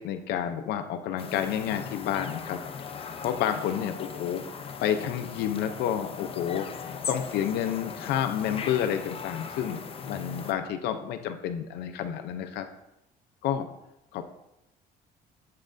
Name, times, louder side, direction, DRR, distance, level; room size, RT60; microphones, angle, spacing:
voice 1, 0.0-2.6 2.9-4.4 4.8-12.7 13.4-13.7 14.1-14.2, left 9 dB, 75° left, 7 dB, 0.6 m, -30 dB
sound 1, 1.2-10.5, left 6 dB, 35° left, 0.6 m, -39 dB
7.6 x 7.3 x 2.5 m, 0.88 s
cardioid pair, 110°, 17 cm